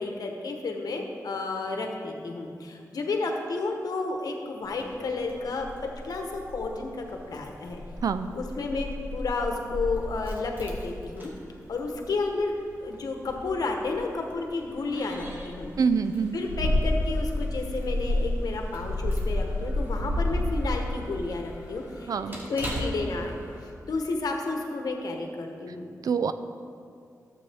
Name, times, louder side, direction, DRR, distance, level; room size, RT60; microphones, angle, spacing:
voice 1, 0.0-7.8 8.3-11.3 11.7-12.5 12.8-15.7 16.3-25.9, left 3 dB, 80° left, 2 dB, 1.0 m, -31 dB
Keys jangling, 4.6-23.7, left 1 dB, 30° right, 1.8 m, -32 dB
voice 2, 15.8-16.4 22.1-22.4 26.0-26.3, right 6 dB, 70° right, 11 dB, 0.4 m, -25 dB
12.0 x 7.6 x 3.5 m, 2.3 s
wide cardioid pair, 95°, 6 cm